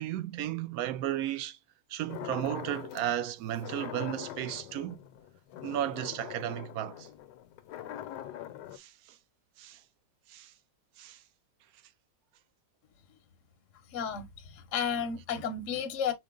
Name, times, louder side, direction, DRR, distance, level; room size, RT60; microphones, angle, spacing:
voice 1, 0.0-1.6 1.9-5.0 5.6-7.1 8.7-8.9 9.6-9.8 10.3-10.5 11.0-11.2, right 12 dB, 70° right, 0.9 m, -34 dB
sound 1, 2.1-3.1 3.5-8.8, left 11 dB, 80° left, 1.2 m, -43 dB
voice 2, 13.9-16.1, left 7 dB, 60° left, 0.9 m, -33 dB
5.2 x 2.1 x 3.6 m
omnidirectional pair, 1.9 m